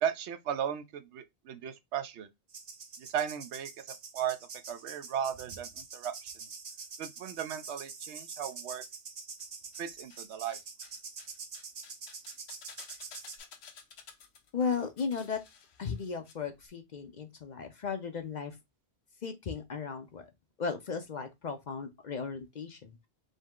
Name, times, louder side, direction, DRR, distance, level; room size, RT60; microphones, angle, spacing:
voice 1, 0.0-2.3 3.0-3.7 4.1-4.4 4.7-6.5 7.0-8.8 9.8-10.6, right 9 dB, 85° right, 0.9 m, -36 dB
sound 1, 2.5-13.4, right 5 dB, 45° right, 0.6 m, -45 dB
sound 2, 9.4-10.2 10.5-16.3 16.6-16.7, left 6 dB, 75° left, 1.0 m, -53 dB
voice 2, 14.5-15.4 15.8-18.6 19.2-20.3 20.6-22.9, left 5 dB, 50° left, 0.6 m, -35 dB
5.3 x 2.1 x 3.6 m
omnidirectional pair, 1.1 m